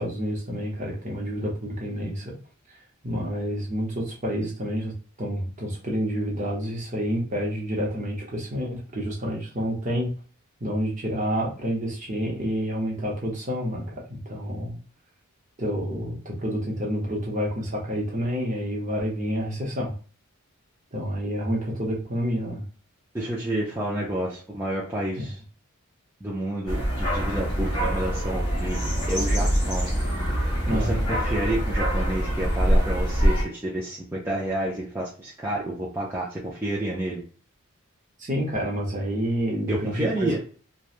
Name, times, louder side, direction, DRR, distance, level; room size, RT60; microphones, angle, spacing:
voice 1, 0.0-2.3 3.0-10.1 10.6-13.8 14.1-14.8 15.6-19.9 20.9-22.6 25.2-25.3 30.7-30.9 38.2-40.3, equal, 35° right, -2 dB, 0.8 m, -28 dB
voice 2, 23.1-25.4 26.2-28.8 29.1-29.9 30.7-37.2 39.7-40.4, right 1 dB, 10° right, -6 dB, 0.4 m, -29 dB
sound 1, 26.7-33.4, equal, 20° left, 1.3 m, -24 dB
3.0 x 2.2 x 2.4 m, 0.40 s
head